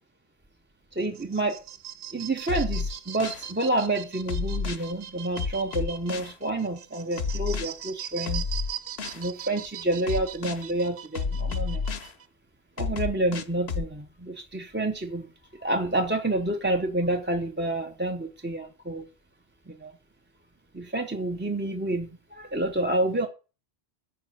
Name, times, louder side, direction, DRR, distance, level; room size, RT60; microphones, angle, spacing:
voice 1, 1.0-1.6 2.1-8.4 9.1-11.8 12.8-15.3 15.6-19.1 19.7-19.9 20.7-23.3, right 2 dB, 15° right, 0.6 m, -28 dB
sound 1, 1.0-12.3, right 9 dB, 65° right, 0.9 m, -41 dB
sound 2, 2.5-3.4 4.3-4.8 5.4-6.3 7.2-7.7 8.3-9.2 10.1-10.6 11.1-12.1 12.8-13.9, left 5 dB, 85° left, 1.1 m, -30 dB
10.5 x 5.2 x 7.6 m
omnidirectional pair, 1.0 m